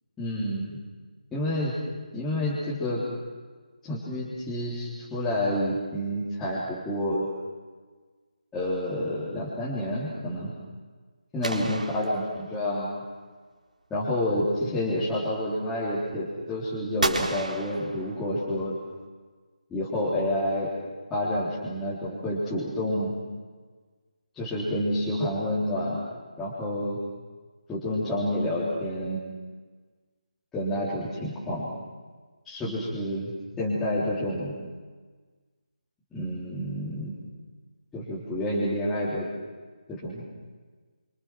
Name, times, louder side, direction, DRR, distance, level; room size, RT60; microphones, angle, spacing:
voice 1, 0.2-0.7 1.3-1.7 2.1-3.0 3.8-7.3 8.5-10.5 11.3-13.0 13.9-18.7 19.7-20.7 21.1-23.1 24.3-26.0 26.4-27.0 27.7-29.2 30.5-31.7 32.4-33.3 33.6-34.5 36.1-37.1 37.9-39.3 39.9-40.2, left 1 dB, 5° left, -10 dB, 3.7 m, -29 dB
sound 1, 11.4-12.9 17.0-18.6, right 2 dB, 90° right, 4.0 m, -32 dB
27.5 x 27.5 x 6.1 m, 1.4 s
figure-of-eight pair, 165°, 4 cm